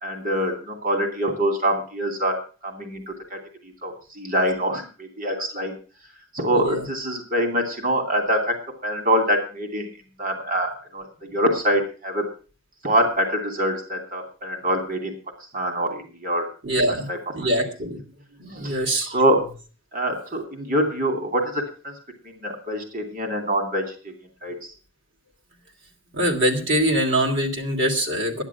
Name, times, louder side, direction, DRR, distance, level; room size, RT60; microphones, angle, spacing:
voice 1, 0.0-2.4 2.6-3.4 3.8-5.7 6.3-8.5 8.8-9.9 10.2-11.1 11.3-12.2 12.8-15.1 15.5-16.5 16.9-17.2 18.5-19.4 19.9-21.9 22.3-23.8 24.4-24.5, equal, 40° right, 4 dB, 2.8 m, -24 dB
voice 2, 6.5-6.9 16.6-17.1 17.3-18.0 18.4-19.2 26.1-28.4, right 1 dB, 60° right, 1 dB, 2.9 m, -23 dB
12.5 x 11.0 x 5.8 m, 0.37 s
head